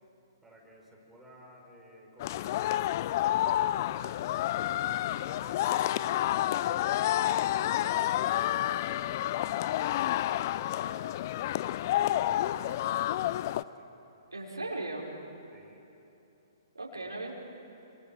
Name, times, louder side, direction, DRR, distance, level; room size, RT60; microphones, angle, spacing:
voice 1, 0.4-2.6 3.2-7.0 7.5-10.2 10.7-14.0 14.6-14.7 15.5-15.9, equal, 5° right, -3 dB, 5.3 m, -54 dB
sound 1, 2.2-13.6, left 13 dB, 45° left, 0.5 m, -29 dB
voice 2, 14.3-15.1 16.7-17.3, right 2 dB, 90° right, -2 dB, 5.1 m, -37 dB
28.5 x 26.0 x 7.8 m, 2.9 s
figure-of-eight pair, 125°, 2 cm